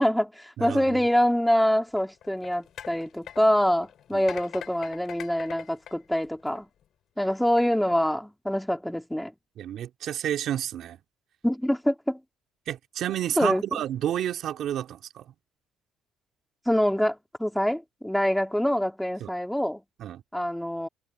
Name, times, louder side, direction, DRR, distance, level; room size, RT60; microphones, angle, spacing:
voice 1, 0.0-6.7 7.2-9.3 11.4-12.2 13.4-13.6 16.7-19.8 20.3-20.9, equal, 5° left, 2.7 m, -25 dB
voice 2, 0.6-1.0 4.1-4.2 9.6-11.0 12.7-15.2 19.2-19.3 20.0-20.2, right 11 dB, 60° right, 2.7 m, -30 dB
sound 1, 1.9-6.8 7.4-7.6, left 10 dB, 60° left, 6.4 m, -44 dB
supercardioid pair, 85°, 0 cm